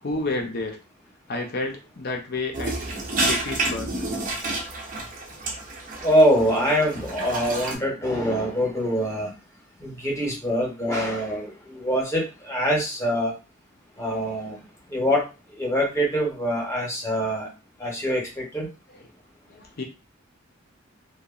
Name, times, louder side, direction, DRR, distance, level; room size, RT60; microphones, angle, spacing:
voice 1, 0.0-0.8 1.3-2.7 3.2-3.9 19.5-19.8, left 2 dB, 50° left, 2 dB, 0.6 m, -30 dB
sound 1, 2.5-7.7, right 2 dB, 40° right, 0.6 m, -29 dB
voice 2, 6.0-9.3 9.8-13.3 14.0-14.6 14.9-15.2 15.5-17.5 17.8-18.7, equal, 15° left, -2 dB, 0.9 m, -24 dB
2.8 x 2.3 x 2.3 m, 0.29 s
head